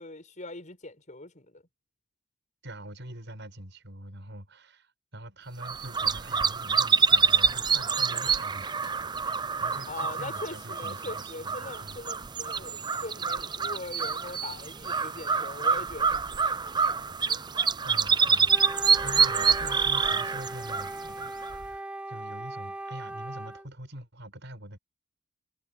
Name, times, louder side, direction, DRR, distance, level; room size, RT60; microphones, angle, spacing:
voice 1, 0.0-1.6 9.9-16.8 17.3-17.4, left 2 dB, 40° left, 6.7 m, -41 dB
voice 2, 2.6-12.0 17.8-24.8, right 1 dB, 60° right, 7.6 m, -44 dB
sound 1, 5.6-21.7, right 5 dB, 20° right, 0.5 m, -27 dB
Wind instrument woodwind instrument, 18.5-23.7, right 1 dB, 5° right, 1.3 m, -39 dB
head